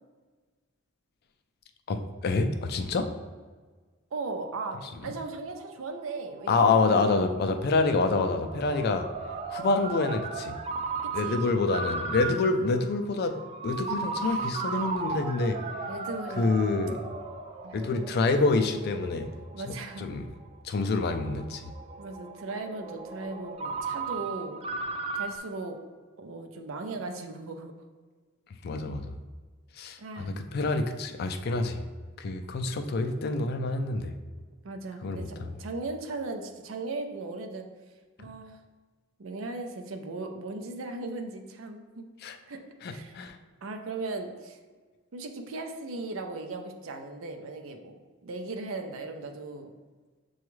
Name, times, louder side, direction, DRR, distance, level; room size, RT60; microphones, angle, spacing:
voice 1, 1.9-3.1 6.5-9.1 9.5-10.5 11.1-13.3 13.6-15.6 16.4-17.0 17.7-19.3 19.7-20.3 20.6-21.6 28.6-29.1 29.7-31.8 32.2-34.1 35.0-35.5 42.2-42.4 42.8-43.4, left 3 dB, 50° left, 7 dB, 0.4 m, -27 dB
voice 2, 4.1-6.9 11.2-11.4 14.2-14.5 15.9-16.5 17.6-17.8 19.5-20.0 22.0-24.6 25.1-25.8 26.2-27.7 30.0-30.3 34.6-37.7 38.2-38.6 39.2-42.0 42.5-42.6 42.9-43.2 43.6-44.6 45.1-47.9 48.2-49.7, right 3 dB, 85° right, 5 dB, 0.5 m, -37 dB
Ringtone, 5.6-25.4, right 4 dB, 30° right, 0.4 m, -37 dB
6.9 x 2.3 x 3.1 m, 1.4 s
head